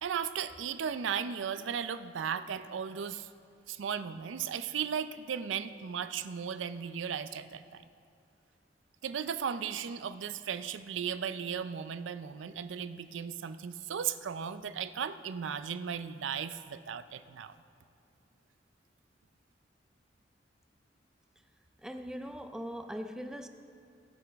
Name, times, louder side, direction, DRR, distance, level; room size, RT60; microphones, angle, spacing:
voice 1, 0.0-3.3 3.7-7.8 9.0-17.5, right 7 dB, 85° right, 12 dB, 0.4 m, -36 dB
voice 2, 21.8-23.5, equal, 5° right, 7 dB, 0.4 m, -40 dB
20.5 x 7.0 x 3.5 m, 2.4 s
head